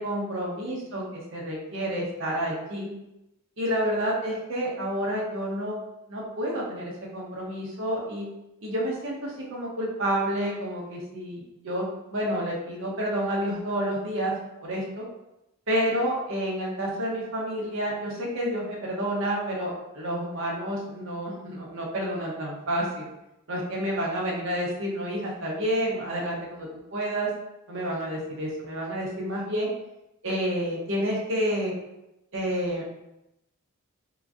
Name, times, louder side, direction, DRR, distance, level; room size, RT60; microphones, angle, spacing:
voice 1, 0.0-2.9 3.6-5.8 6.1-8.3 8.6-14.3 14.6-15.0 15.7-23.1 23.5-27.3 27.7-29.7 30.2-31.7 32.3-32.9, equal, 55° right, -3 dB, 0.8 m, -29 dB
3.4 x 2.9 x 2.5 m, 0.90 s
head